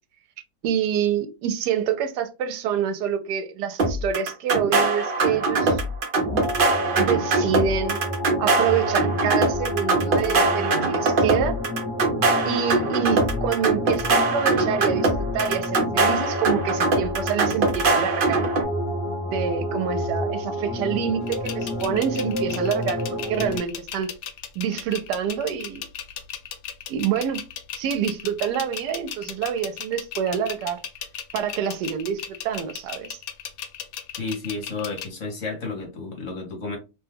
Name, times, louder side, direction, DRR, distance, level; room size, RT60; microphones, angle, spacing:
voice 1, 0.6-5.8 7.0-8.0 8.4-11.6 12.5-18.5 19.2-24.1 24.6-25.8 26.9-27.4 27.8-30.8 31.3-33.2, right 8 dB, 80° right, 1.2 m, -27 dB
sound 1, 3.8-18.6, right 3 dB, 55° right, 0.6 m, -22 dB
sound 2, 6.2-23.6, left 1 dB, 5° right, 0.5 m, -30 dB
sound 3, 21.3-35.1, left 8 dB, 80° left, 1.2 m, -36 dB
voice 2, 34.2-36.8, left 3 dB, 55° left, 1.2 m, -32 dB
2.8 x 2.2 x 3.4 m
omnidirectional pair, 1.8 m